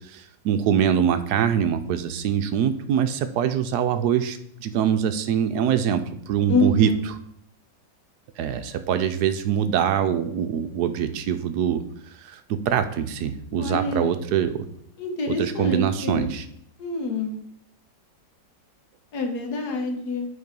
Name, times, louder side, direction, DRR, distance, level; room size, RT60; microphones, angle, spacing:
voice 1, 0.1-7.2 8.4-11.8 12.2-12.4 12.7-14.6 15.3-16.5, right 8 dB, 70° right, 9 dB, 1.1 m, -24 dB
voice 2, 6.5-7.0 13.6-14.1 15.0-16.3 16.8-17.3 19.1-20.3, left 3 dB, 60° left, 3 dB, 1.8 m, -26 dB
8.4 x 4.0 x 5.2 m, 0.68 s
omnidirectional pair, 2.0 m